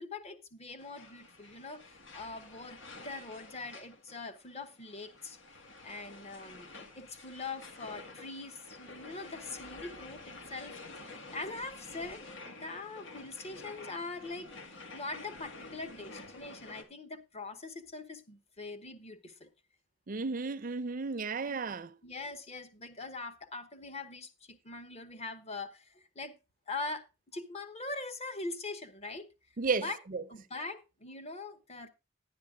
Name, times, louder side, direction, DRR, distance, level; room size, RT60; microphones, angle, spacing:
voice 1, 0.0-5.4 5.8-10.7 11.1-19.5 21.5-21.6 22.0-26.3 26.7-27.1 27.3-29.3 29.8-30.0 30.3-31.9, left 3 dB, 35° left, 1.2 m, -42 dB
sound 1, 0.8-16.8, left 3 dB, 80° left, 1.9 m, -50 dB
voice 2, 20.1-22.0 29.6-30.2, right 4 dB, 45° right, 0.6 m, -33 dB
11.0 x 9.5 x 3.7 m
head